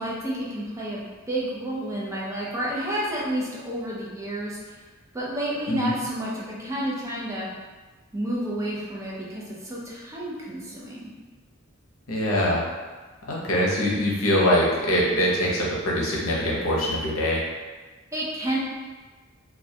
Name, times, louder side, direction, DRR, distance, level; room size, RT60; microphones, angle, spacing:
voice 1, 0.0-4.7 5.1-7.5 8.1-11.1 18.1-18.6, right 1 dB, 15° right, -6 dB, 0.4 m, -30 dB
voice 2, 12.1-12.6 13.3-17.4, equal, 85° left, -4 dB, 0.6 m, -23 dB
2.2 x 2.1 x 2.7 m, 1.3 s
head